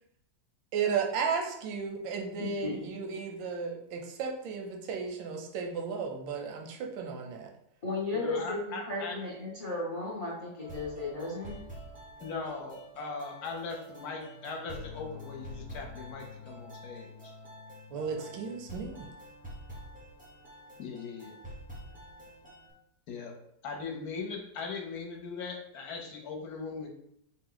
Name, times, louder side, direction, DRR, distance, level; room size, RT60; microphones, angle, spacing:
voice 1, 0.7-7.5 17.9-19.1, right 6 dB, 90° right, 2 dB, 1.4 m, -34 dB
voice 2, 2.4-2.8 7.8-11.6, left 2 dB, 50° left, -5 dB, 0.4 m, -35 dB
voice 3, 8.1-9.2 12.2-17.3 20.8-21.3 23.1-23.3 23.6-26.9, left 4 dB, 65° left, 1 dB, 1.1 m, -39 dB
sound 1, 10.6-22.7, equal, 10° right, 0.6 m, -47 dB
4.4 x 2.1 x 3.8 m, 0.75 s
omnidirectional pair, 2.0 m